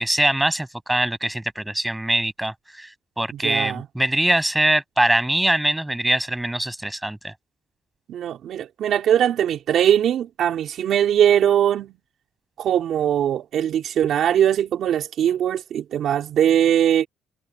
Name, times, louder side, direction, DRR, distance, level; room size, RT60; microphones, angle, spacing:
voice 1, 0.0-7.3, right 1 dB, 10° right, 6.9 m, -23 dB
voice 2, 3.3-3.9 8.1-12.0 12.6-17.1, right 10 dB, 70° right, 3.5 m, -21 dB
cardioid pair, 90°, 0 cm